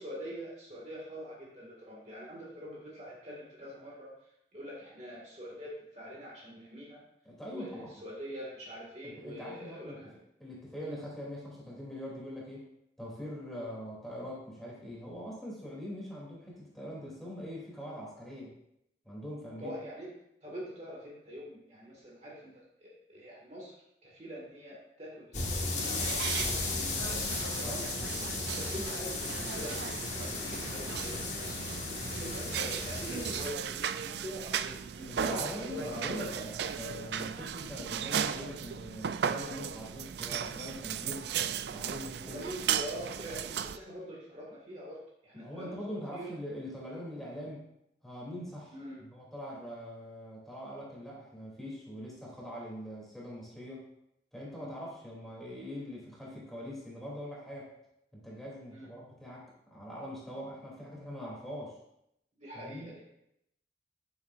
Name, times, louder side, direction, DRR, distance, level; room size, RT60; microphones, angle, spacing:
voice 1, 0.0-4.1 4.5-7.0 7.5-10.1 10.8-11.0 13.5-13.7 19.6-20.1 20.4-23.7 24.0-27.2 27.5-27.8 28.5-31.7 32.2-36.4 39.5-39.7 42.2-46.3 48.7-49.0 54.5-54.8 58.7-58.9 62.4-63.0, equal, 35° right, -4 dB, 1.9 m, -44 dB
voice 2, 7.2-7.9 9.0-10.0 10.4-12.7 13.0-18.5 19.0-19.7 27.6-27.9 35.1-41.2 41.7-42.4 45.3-47.6 48.0-48.7 49.0-53.9 54.3-57.7 58.1-61.8 62.5-62.9, equal, ahead, -6 dB, 2.8 m, -42 dB
sound 1, 25.3-33.5, left 3 dB, 40° left, 1.6 m, -35 dB
sound 2, 25.7-43.8, right 8 dB, 65° right, 0.3 m, -36 dB
13.5 x 7.3 x 2.5 m, 0.79 s
head